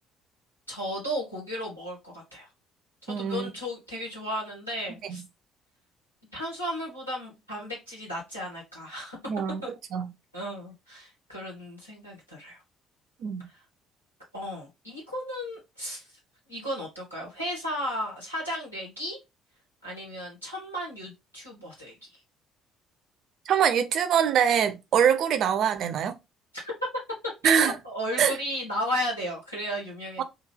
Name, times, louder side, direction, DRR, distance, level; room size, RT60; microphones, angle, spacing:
voice 1, 0.7-2.5 3.0-5.2 6.3-9.2 9.6-9.7 10.3-12.6 14.3-16.2 16.5-19.2 19.8-21.9 26.5-26.7 27.4-30.2, equal, 90° left, 1.5 m, -34 dB
voice 2, 3.1-3.5 9.3-10.1 13.2-13.5 23.5-26.2 27.4-27.7 28.2-28.4 30.2-30.3, right 8 dB, 50° right, 0.5 m, -24 dB
3.6 x 2.3 x 3.2 m
figure-of-eight pair, 50°, 0 cm